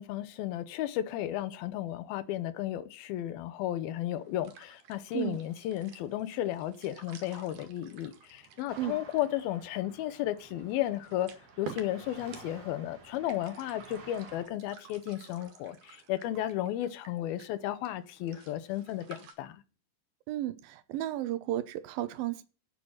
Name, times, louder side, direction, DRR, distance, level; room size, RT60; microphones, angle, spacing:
voice 1, 0.0-11.3 11.6-19.6, left 13 dB, 80° left, 2.7 m, -34 dB
sound 1, 4.2-19.3, right 6 dB, 60° right, 3.2 m, -52 dB
sound 2, 8.7-14.4, right 4 dB, 35° right, 2.3 m, -52 dB
voice 2, 20.3-22.4, right 14 dB, 80° right, 2.6 m, -33 dB
10.5 x 6.4 x 8.7 m
omnidirectional pair, 4.4 m